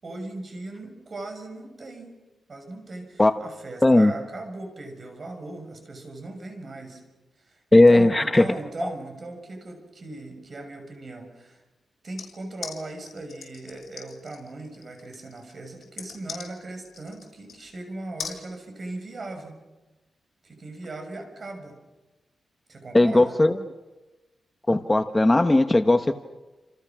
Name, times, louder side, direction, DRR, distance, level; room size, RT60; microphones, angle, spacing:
voice 1, 0.0-2.1 2.5-7.0 7.4-11.6 12.0-19.6 20.4-21.8 22.7-23.4, right 2 dB, 40° right, 4 dB, 6.4 m, -38 dB
voice 2, 7.7-8.4 22.9-23.5 24.7-26.1, left 2 dB, 15° left, 7 dB, 1.0 m, -17 dB
sound 1, 12.2-17.7 18.2-18.4, left 6 dB, 60° left, 6.2 m, -40 dB
29.5 x 28.0 x 6.1 m, 1.1 s
wide cardioid pair, 120°, 0 cm